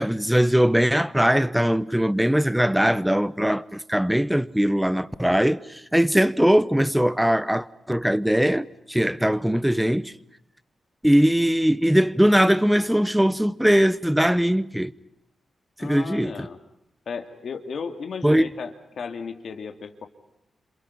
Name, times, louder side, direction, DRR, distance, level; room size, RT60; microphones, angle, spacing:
voice 1, 0.0-5.6 5.9-10.1 11.0-14.9 15.8-16.5 18.2-18.4, equal, 5° right, 1.0 m, -20 dB
voice 2, 15.8-16.6 17.1-20.1, left 5 dB, 70° left, 2.7 m, -34 dB
29.0 x 27.0 x 5.5 m
cardioid pair, 70°, 0 cm